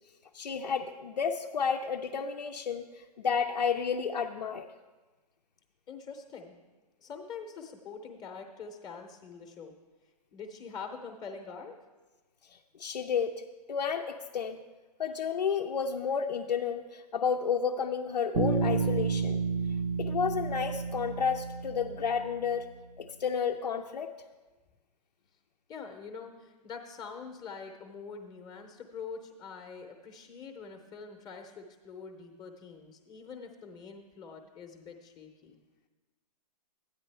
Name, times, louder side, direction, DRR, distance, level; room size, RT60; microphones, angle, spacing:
voice 1, 0.3-4.7 12.5-13.4 13.7-14.6 15.0-19.4 20.0-22.7 23.0-24.1, left 6 dB, 85° left, 1 dB, 0.6 m, -31 dB
voice 2, 5.9-6.5 7.0-9.7 10.3-11.7 25.7-35.6, left 5 dB, 20° left, 4 dB, 0.8 m, -44 dB
Bass guitar, 18.3-22.4, right 5 dB, 65° right, 0.9 m, -31 dB
13.0 x 9.5 x 3.4 m, 1.2 s
hypercardioid pair, 130°, 21 cm